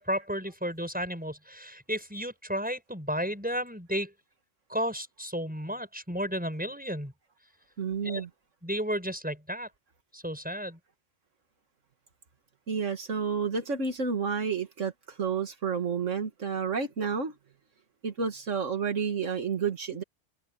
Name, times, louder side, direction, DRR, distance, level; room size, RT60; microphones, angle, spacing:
voice 1, 0.0-4.1 4.7-7.1 8.0-8.2 8.6-9.7 10.1-10.8, equal, 5° right, 6.6 m, -33 dB
voice 2, 7.8-8.3 12.7-17.4 18.0-20.0, right 6 dB, 80° right, 2.1 m, -30 dB
omnidirectional pair, 1.3 m